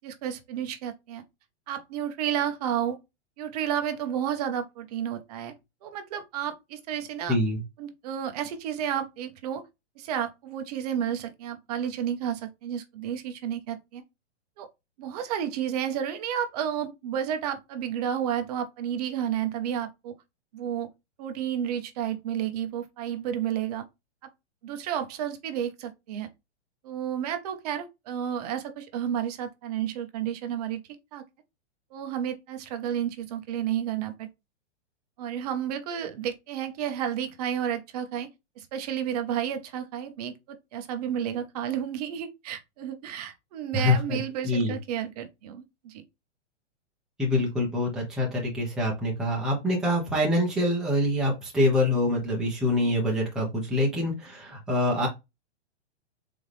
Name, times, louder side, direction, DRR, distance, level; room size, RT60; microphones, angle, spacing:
voice 1, 0.0-1.2 1.7-3.0 3.4-5.5 5.8-7.4 7.8-9.6 10.0-14.0 14.6-14.7 15.0-20.1 20.5-20.9 21.2-23.9 24.6-26.3 26.8-30.8 31.1-31.2 31.9-34.3 35.2-38.3 38.6-46.0, right 9 dB, 35° right, 0.8 m, -31 dB
voice 2, 7.3-7.6 43.7-44.8 47.2-55.1, left 1 dB, ahead, 1.0 m, -25 dB
4.0 x 3.5 x 3.1 m
hypercardioid pair, 160°, 35 cm